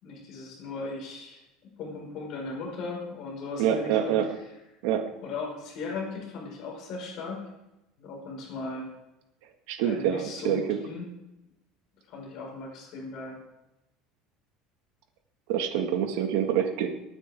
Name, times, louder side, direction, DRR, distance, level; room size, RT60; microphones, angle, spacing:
voice 1, 0.0-1.4 1.8-4.2 5.2-7.4 8.0-8.9 9.8-11.1 12.1-13.4, left 3 dB, 50° left, -1 dB, 5.1 m, -37 dB
voice 2, 3.6-4.3 4.8-5.1 9.7-10.8 15.5-16.9, right 9 dB, 80° right, 5 dB, 1.8 m, -26 dB
23.0 x 9.3 x 3.7 m, 0.92 s
cardioid pair, 150°, 0 cm